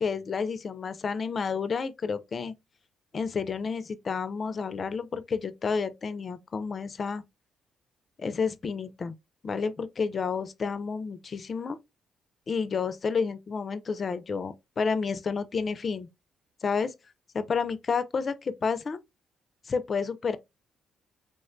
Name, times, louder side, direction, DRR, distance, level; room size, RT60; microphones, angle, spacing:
voice 1, 0.0-2.5 3.1-7.2 8.2-9.1 9.4-11.8 12.5-16.1 16.6-16.9 17.3-19.0 19.7-20.4, left 5 dB, 40° left, 0.4 m, -30 dB
3.4 x 2.1 x 2.4 m
cardioid pair, 90°, 0 cm